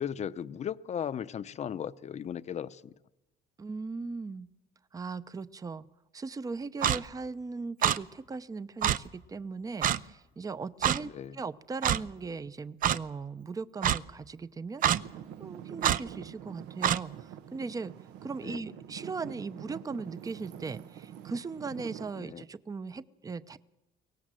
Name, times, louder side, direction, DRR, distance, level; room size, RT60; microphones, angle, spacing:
voice 1, 0.0-2.9 11.0-11.4 18.4-18.7 22.2-22.4, left 8 dB, 40° left, 15 dB, 0.8 m, -37 dB
voice 2, 3.6-4.5 4.9-5.8 6.1-17.9 18.2-23.6, right 4 dB, 20° right, 15 dB, 0.7 m, -38 dB
Clock, 6.8-7.0 7.8-8.0 8.8-9.0 9.8-10.0 10.8-11.0 11.8-12.0 12.8-13.0 13.8-14.0 14.8-15.0 15.8-16.0 16.8-17.0, right 10 dB, 55° right, 0.7 m, -25 dB
Traffic noise roadway noise / Engine, 14.9-22.1, right 10 dB, 90° right, 1.2 m, -46 dB
23.0 x 19.0 x 7.6 m, 1.0 s
cardioid pair, 110°, 17 cm